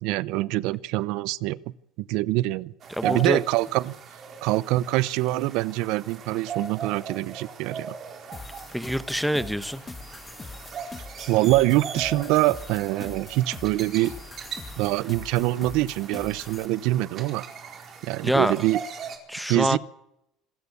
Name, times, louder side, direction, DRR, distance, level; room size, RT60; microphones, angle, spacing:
voice 1, 0.0-1.6 2.0-2.7 3.0-3.9 4.4-7.9 11.3-14.1 14.8-17.4 18.0-18.8 19.5-19.8, right 17 dB, 70° right, 20 dB, 0.7 m, -24 dB
sound 1, 2.8-19.2, right 6 dB, 40° right, 4.3 m, -39 dB
voice 2, 3.0-3.4 8.7-9.8 18.2-18.5 19.3-19.8, equal, ahead, 13 dB, 1.1 m, -25 dB
sound 2, 8.3-16.7, left 3 dB, 15° left, 1.5 m, -42 dB
26.0 x 14.0 x 8.2 m, 0.81 s
cardioid pair, 135°, 0 cm